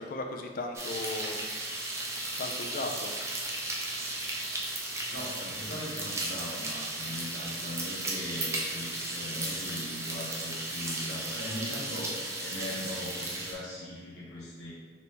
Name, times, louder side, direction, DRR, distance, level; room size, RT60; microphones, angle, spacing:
voice 1, 0.0-1.4 2.4-3.1, left 2 dB, 50° left, 4 dB, 0.4 m, -36 dB
sound 1, 0.7-13.5, right 2 dB, 15° right, 0.5 m, -35 dB
voice 2, 5.1-14.7, left 1 dB, 70° left, -8 dB, 1.2 m, -40 dB
4.2 x 3.0 x 3.3 m, 1.5 s
head